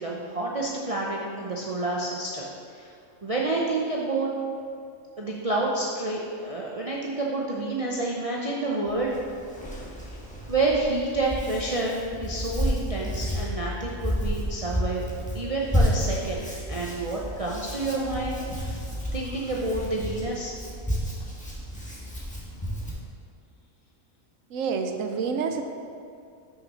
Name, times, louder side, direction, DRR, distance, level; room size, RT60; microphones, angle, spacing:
voice 1, 0.0-2.4 2.7-2.9 3.2-4.3 5.2-9.2 10.5-15.0 15.3-18.7 19.1-20.5, right 2 dB, 35° right, -4 dB, 0.6 m, -29 dB
Hands, 8.9-22.9, equal, 5° left, 1.2 m, -31 dB
voice 2, 24.5-25.6, right 5 dB, 70° right, 5 dB, 1.0 m, -28 dB
6.4 x 6.0 x 5.4 m, 2.4 s
omnidirectional pair, 1.5 m